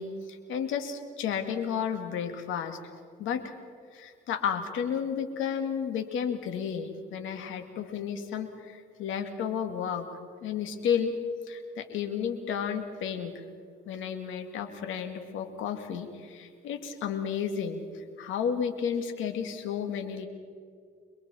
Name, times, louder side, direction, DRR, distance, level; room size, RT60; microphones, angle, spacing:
voice 1, 0.0-2.8 3.2-3.5 3.9-10.1 10.4-11.2 11.5-13.4 13.9-20.3, left 7 dB, 85° left, 7 dB, 2.2 m, -32 dB
28.0 x 22.0 x 4.4 m, 2.1 s
cardioid pair, 90°, 20 cm